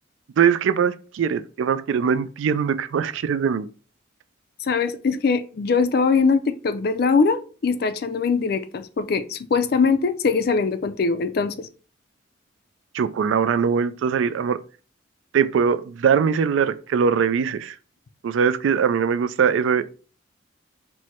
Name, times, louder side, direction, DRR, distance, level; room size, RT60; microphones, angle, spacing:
voice 1, 0.4-3.7 12.9-14.6 15.3-17.8 18.2-19.8, right 7 dB, 75° right, 0.3 m, -21 dB
voice 2, 4.6-11.7, left 4 dB, 50° left, 0.4 m, -22 dB
4.6 x 2.1 x 4.2 m
head